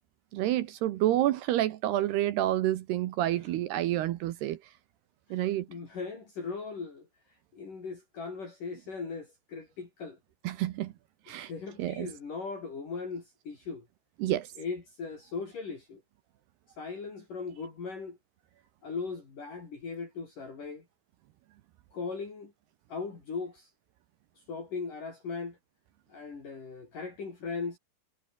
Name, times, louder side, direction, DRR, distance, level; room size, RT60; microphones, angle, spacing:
voice 1, 0.3-4.6 5.3-5.7 10.4-10.9 11.3-11.5 11.8-12.1 14.2-14.5, right 14 dB, 75° right, 2.9 m, -28 dB
voice 2, 5.3-7.0 7.5-10.2 11.3-13.9 14.6-16.0 16.8-18.2 18.8-20.8 21.9-22.5 22.9-23.7 24.5-25.6 26.1-27.8, left 4 dB, 45° left, 6.6 m, -38 dB
omnidirectional pair, 5.2 m